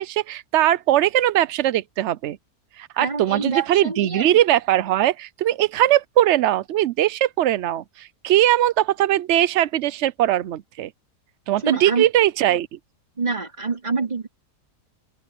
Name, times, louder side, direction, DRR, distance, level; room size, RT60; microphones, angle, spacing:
voice 1, 0.0-2.4 2.8-10.9 11.5-12.7, right 13 dB, 80° right, 0.6 m, -20 dB
voice 2, 3.0-4.3 11.6-12.1 13.2-14.3, right 4 dB, 25° right, 2.8 m, -26 dB
open air
omnidirectional pair, 1.8 m